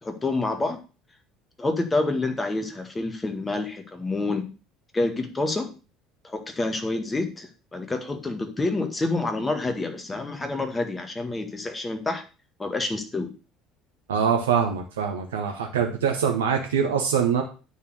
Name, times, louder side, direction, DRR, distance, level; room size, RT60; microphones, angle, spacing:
voice 1, 0.0-0.8 1.6-4.5 4.9-5.7 6.2-12.2 12.6-13.3, left 2 dB, 20° left, 6 dB, 1.8 m, -28 dB
voice 2, 14.1-17.4, right 7 dB, 75° right, 3 dB, 1.0 m, -24 dB
9.4 x 4.3 x 6.6 m, 0.33 s
figure-of-eight pair, 60°, 0 cm